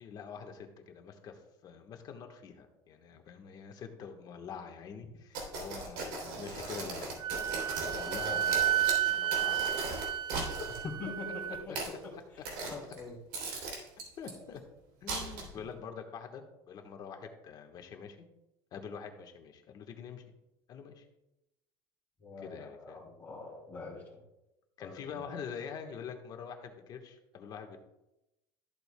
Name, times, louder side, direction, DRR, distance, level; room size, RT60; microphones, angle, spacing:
voice 1, 0.0-7.1 7.4-10.0 11.7-11.8 14.2-14.6 15.0-18.2 18.7-20.2 20.7-21.0 22.4-23.0 24.8-27.8, left 6 dB, 40° left, 4 dB, 1.3 m, -45 dB
sound 1, 5.3-10.8 11.5-12.0 12.4-13.0 13.3-14.3 15.1-15.6, right 3 dB, 75° right, 3.0 m, -38 dB
Wind instrument woodwind instrument, 7.2-11.6, right 11 dB, 50° right, 0.4 m, -32 dB
voice 2, 10.8-13.2 22.2-24.2 24.8-25.3, left 3 dB, 20° left, -7 dB, 2.6 m, -44 dB
13.5 x 7.8 x 2.2 m, 0.92 s
cardioid pair, 145°, 10 cm